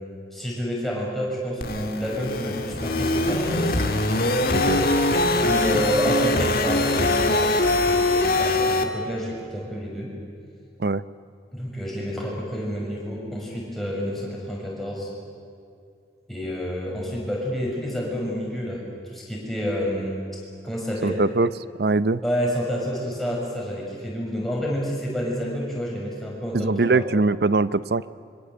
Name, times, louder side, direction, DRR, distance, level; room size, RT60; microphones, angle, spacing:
voice 1, 0.3-3.8 5.4-10.1 11.5-15.1 16.3-21.2 22.2-27.1, equal, ahead, -4 dB, 6.6 m, -29 dB
sound 1, 1.6-8.8, left 2 dB, 50° left, 2.1 m, -22 dB
voice 2, 4.5-4.8 10.8-11.0 21.0-21.5 21.8-22.2 26.5-28.0, right 3 dB, 60° right, 16 dB, 0.6 m, -22 dB
26.0 x 24.5 x 8.2 m, 2.4 s
head